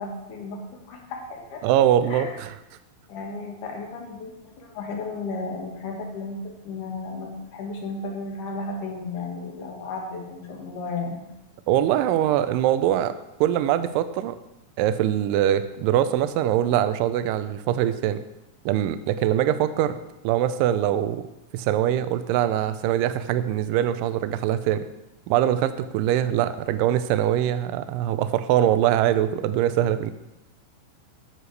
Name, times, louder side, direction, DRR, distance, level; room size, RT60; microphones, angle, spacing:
voice 1, 0.0-1.6 2.1-2.4 3.1-11.2, left 3 dB, 65° left, 0 dB, 2.8 m, -34 dB
voice 2, 1.6-2.5 11.7-13.1 13.4-14.4 14.8-18.2 18.7-20.0 20.2-21.3 21.5-24.9 25.3-30.1, right 11 dB, 80° right, 12 dB, 2.1 m, -23 dB
14.0 x 6.4 x 3.3 m, 0.92 s
omnidirectional pair, 4.2 m